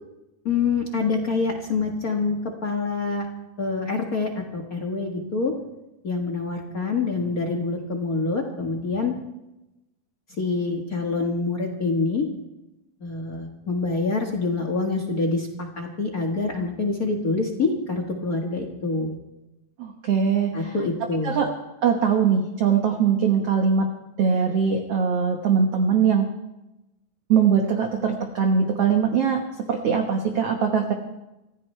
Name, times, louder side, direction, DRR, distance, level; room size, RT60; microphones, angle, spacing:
voice 1, 0.4-3.3 3.6-5.5 6.0-9.1 10.4-12.2 13.0-19.2 20.5-21.4, left 3 dB, 50° left, 2 dB, 1.0 m, -26 dB
voice 2, 19.8-20.7 21.2-21.5 21.8-23.9 24.2-26.3 27.3-29.4 29.7-30.9, right 6 dB, 60° right, 3 dB, 1.7 m, -21 dB
26.0 x 15.5 x 3.3 m, 0.95 s
omnidirectional pair, 4.3 m